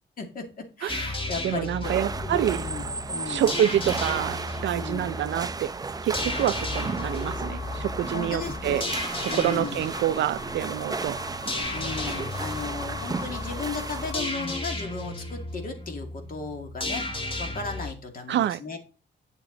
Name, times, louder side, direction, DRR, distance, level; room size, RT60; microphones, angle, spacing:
voice 1, 0.2-1.9 2.2-3.5 4.7-5.1 8.1-8.8 9.3-9.9 11.7-17.0 17.4-18.8, left 4 dB, 50° left, 2.3 m, -36 dB
sound 1, 0.9-17.9, left 2 dB, 30° left, 2.0 m, -34 dB
voice 2, 1.4-2.6 3.3-5.7 6.0-8.8 9.3-11.2 18.3-18.6, right 11 dB, 75° right, 0.5 m, -27 dB
sound 2, 1.8-14.1, right 4 dB, 20° right, 0.5 m, -34 dB
sound 3, 6.7-14.6, left 11 dB, 90° left, 1.1 m, -42 dB
9.3 x 7.0 x 3.9 m
cardioid pair, 125°, 19 cm